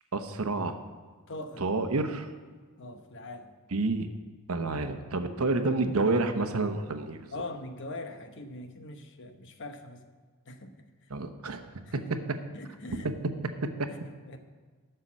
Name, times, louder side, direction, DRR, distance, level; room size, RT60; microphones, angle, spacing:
voice 1, 0.1-0.7 1.6-2.3 3.7-4.1 4.5-7.3 11.1-11.6, right 3 dB, 70° right, 8 dB, 1.0 m, -29 dB
voice 2, 1.3-1.6 2.8-3.5 7.3-10.0 10.5-10.7 11.9-12.1 12.5-13.1 13.9-14.0 14.2-14.4, left 2 dB, 55° left, 7 dB, 1.0 m, -41 dB
12.0 x 6.7 x 7.4 m, 1.5 s
head